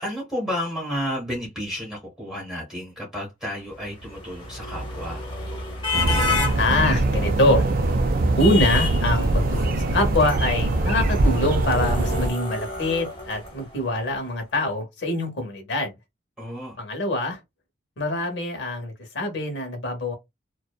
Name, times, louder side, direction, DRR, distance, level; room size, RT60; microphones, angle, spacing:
voice 1, 0.0-5.3 16.4-16.8, equal, 5° right, 0.9 m, -31 dB
sound 1, 3.7-14.0, left 4 dB, 25° left, 0.8 m, -32 dB
sound 2, 5.9-12.3, right 2 dB, 45° right, 0.3 m, -22 dB
voice 2, 6.5-7.7 8.4-16.0 16.8-17.4 18.0-20.1, left 1 dB, 70° left, 0.9 m, -24 dB
2.6 x 2.2 x 2.2 m
head